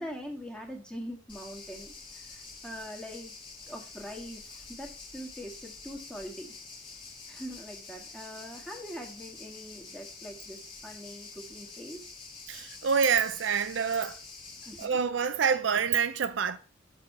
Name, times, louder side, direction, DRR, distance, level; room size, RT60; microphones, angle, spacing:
voice 1, 0.0-3.3 3.7-6.5 7.3-12.0 14.6-15.0, equal, 5° left, 1.6 m, -43 dB
sound 1, 1.3-14.9, left 4 dB, 25° left, 1.7 m, -47 dB
voice 2, 12.5-14.2 14.8-16.6, right 6 dB, 70° right, 0.5 m, -27 dB
6.6 x 6.2 x 5.3 m
head